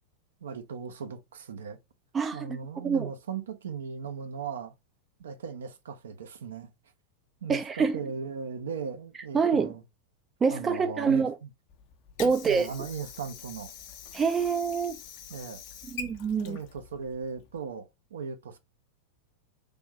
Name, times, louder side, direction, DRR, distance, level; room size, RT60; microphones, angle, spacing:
voice 1, 0.4-1.8 2.3-4.7 5.2-6.7 7.4-9.8 10.5-11.5 12.2-13.7 15.3-15.6 16.3-18.6, right 6 dB, 65° right, 0.6 m, -38 dB
voice 2, 2.1-2.6 2.8-3.1 7.5-8.0 9.3-9.7 10.4-11.4 12.2-12.7 14.1-15.0 15.9-16.6, right 5 dB, 20° right, 0.4 m, -26 dB
Water / Sink (filling or washing), 11.7-17.7, left 6 dB, 45° left, 0.6 m, -45 dB
3.4 x 2.6 x 4.4 m
figure-of-eight pair, 90°, 0 cm